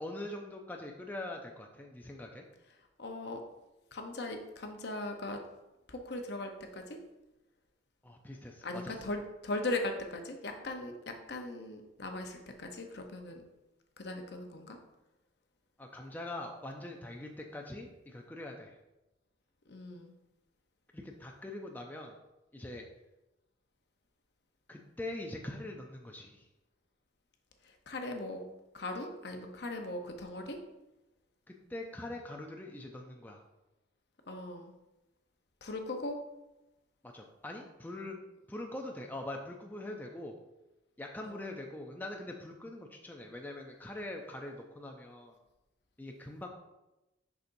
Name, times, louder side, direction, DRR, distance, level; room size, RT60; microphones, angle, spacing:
voice 1, 0.0-2.4 8.0-8.9 15.8-18.8 20.9-22.2 22.5-22.9 24.7-26.5 31.5-33.4 37.0-38.2 38.5-40.3 41.0-45.4 46.0-46.5, left 1 dB, 10° left, 1 dB, 0.5 m, -43 dB
voice 2, 3.0-3.4 3.9-5.4 5.9-7.0 8.6-13.4 14.0-14.8 19.7-20.1 27.6-28.4 28.7-30.6 34.3-34.7 35.6-36.2 41.2-41.5, left 2 dB, 60° left, 4 dB, 0.8 m, -39 dB
6.6 x 5.9 x 2.6 m, 0.98 s
head